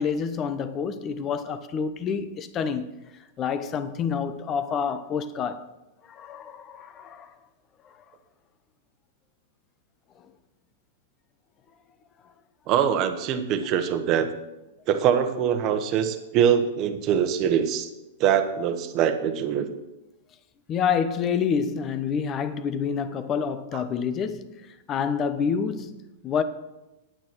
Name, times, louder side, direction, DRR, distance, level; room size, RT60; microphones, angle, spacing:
voice 1, 0.0-2.9 3.4-5.7 6.1-7.3 20.7-26.0 26.2-26.4, left 6 dB, 25° left, 0.8 m, -28 dB
voice 2, 12.7-14.3 14.9-17.9 18.2-19.7 23.7-23.8, right 8 dB, 35° right, 1.2 m, -23 dB
9.3 x 8.9 x 6.2 m
hypercardioid pair, 145°, 0 cm